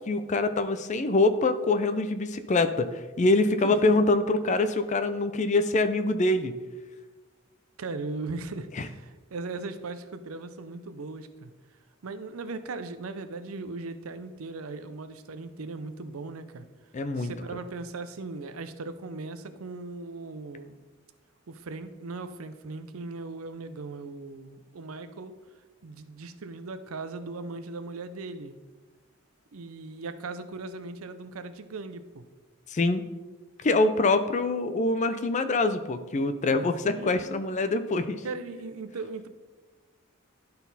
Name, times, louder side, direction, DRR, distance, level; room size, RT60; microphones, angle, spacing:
voice 1, 0.1-2.9 3.2-6.5 8.8-8.9 16.9-17.3 32.7-33.0 33.6-38.2, left 2 dB, 35° left, 10 dB, 0.4 m, -24 dB
voice 2, 3.6-4.1 7.8-11.5 12.0-16.7 17.2-20.8 21.5-25.4 25.8-28.6 29.5-32.2 36.8-37.4 38.2-39.3, right 3 dB, 80° right, 11 dB, 0.6 m, -38 dB
11.0 x 4.1 x 4.0 m, 1.3 s
head